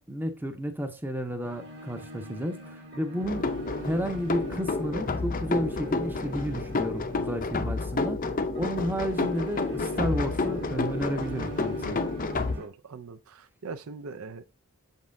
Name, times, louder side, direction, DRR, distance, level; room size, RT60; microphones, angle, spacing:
voice 1, 0.0-3.5 3.9-12.1, equal, 10° right, 0.7 m, -32 dB
sound 1, 1.4-12.7, right 2 dB, 50° right, 1.5 m, -43 dB
sound 2, 3.2-12.6, left 3 dB, 40° left, 0.6 m, -30 dB
voice 2, 12.6-14.4, right 4 dB, 70° right, 0.5 m, -41 dB
7.3 x 5.4 x 2.6 m
head